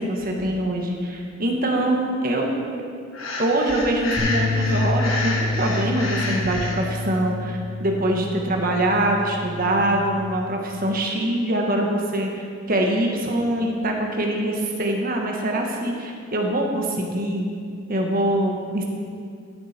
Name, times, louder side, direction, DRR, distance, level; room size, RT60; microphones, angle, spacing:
voice 1, 0.0-2.5 3.4-17.5 17.9-18.8, right 1 dB, 45° right, 1 dB, 1.4 m, -24 dB
Breathing, 3.1-6.8, left 2 dB, 90° left, 1.8 m, -29 dB
sound 1, 4.2-10.4, left 2 dB, 10° right, 2.5 m, -28 dB
13.0 x 7.7 x 4.4 m, 2.3 s
head